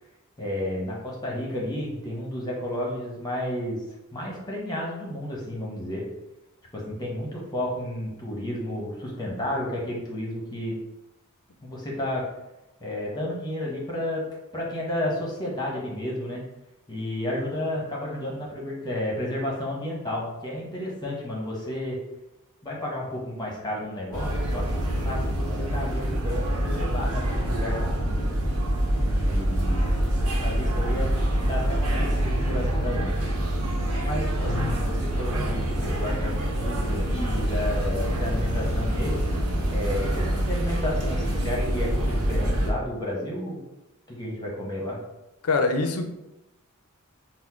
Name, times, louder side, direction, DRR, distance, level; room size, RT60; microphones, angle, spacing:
voice 1, 0.4-3.8 4.1-6.1 6.7-10.8 11.6-12.3 12.8-14.3 14.5-16.4 16.9-22.0 22.6-28.3 29.1-29.9 30.4-31.1 31.4-33.2 34.0-39.2 39.7-43.6 44.1-45.0, left 1 dB, 20° left, -3 dB, 1.0 m, -32 dB
sound 1, 24.1-42.7, right 1 dB, 70° right, 0.9 m, -26 dB
voice 2, 45.4-46.1, left 3 dB, 70° left, 6 dB, 0.5 m, -24 dB
4.1 x 2.1 x 4.4 m, 0.96 s
head